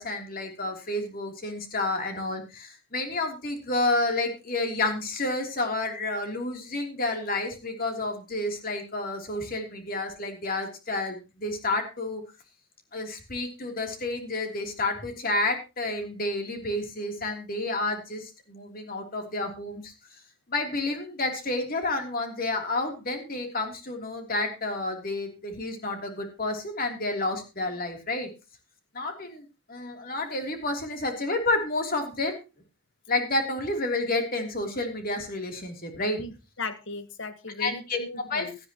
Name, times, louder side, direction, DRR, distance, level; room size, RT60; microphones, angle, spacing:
voice 1, 0.0-12.2 12.9-19.9 20.5-28.3 28.9-32.4 33.1-36.2 37.6-38.5, left 2 dB, 45° left, 4 dB, 3.2 m, -30 dB
voice 2, 36.2-38.6, left 3 dB, 60° left, 11 dB, 1.5 m, -37 dB
17.5 x 12.5 x 3.0 m, 0.29 s
head